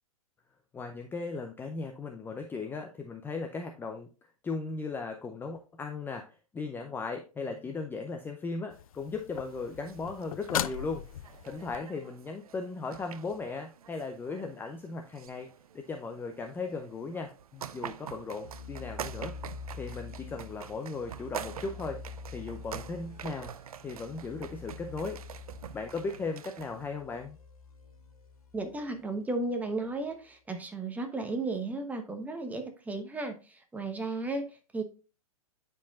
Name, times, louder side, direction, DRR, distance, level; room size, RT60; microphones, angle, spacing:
voice 1, 0.7-4.1 4.4-11.0 11.4-15.5 15.7-19.3 19.7-22.0 22.3-23.5 23.8-25.2 25.7-27.4, left 4 dB, 10° left, 4 dB, 0.5 m, -37 dB
sound 1, 8.7-11.8 15.3-15.4, left 11 dB, 75° left, 0.4 m, -38 dB
sound 2, 9.4-26.9, right 9 dB, 85° right, 0.4 m, -46 dB
sound 3, 18.4-28.9, left 4 dB, 90° left, 1.6 m, -46 dB
voice 2, 28.5-34.8, right 2 dB, 10° right, 5 dB, 1.0 m, -34 dB
10.0 x 4.6 x 2.4 m, 0.34 s
hypercardioid pair, 120°, 18 cm